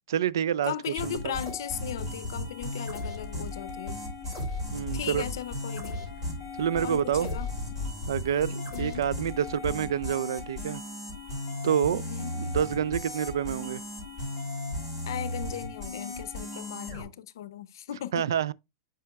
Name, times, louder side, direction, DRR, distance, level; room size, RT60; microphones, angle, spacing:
voice 1, 0.1-0.7 1.0-1.4 4.7-5.2 6.6-7.3 8.1-10.8 11.6-12.0 12.3-13.8 18.1-18.5, right 9 dB, 85° right, 0.3 m, -28 dB
voice 2, 0.6-4.0 4.9-6.1 6.8-7.5 8.7-9.0 11.9-12.3 15.1-18.3, left 11 dB, 70° left, 0.6 m, -37 dB
sound 1, 1.0-17.0, left 2 dB, 20° right, 3.2 m, -36 dB
8.3 x 5.6 x 2.3 m
supercardioid pair, 175°, 2 cm